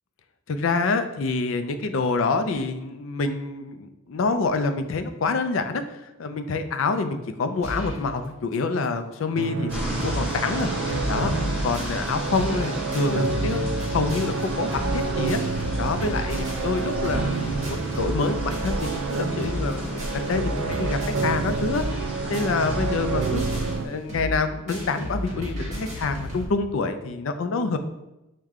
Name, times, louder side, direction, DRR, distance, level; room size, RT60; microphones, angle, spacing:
voice 1, 0.5-10.7 11.1-11.3 11.6-15.4 15.8-21.8 22.3-23.4 23.8-27.8, left 4 dB, 65° left, 9 dB, 0.4 m, -27 dB
sound 1, 7.6-8.1 8.5-8.6 8.8-8.9 9.4-9.5 9.7-10.3 10.6-26.5, equal, 35° right, 1.2 m, -33 dB
sound 2, 9.3-23.9, right 4 dB, 65° right, 0.4 m, -29 dB
sound 3, 9.7-23.8, equal, 10° left, 1.1 m, -34 dB
6.3 x 2.2 x 3.6 m, 0.97 s
head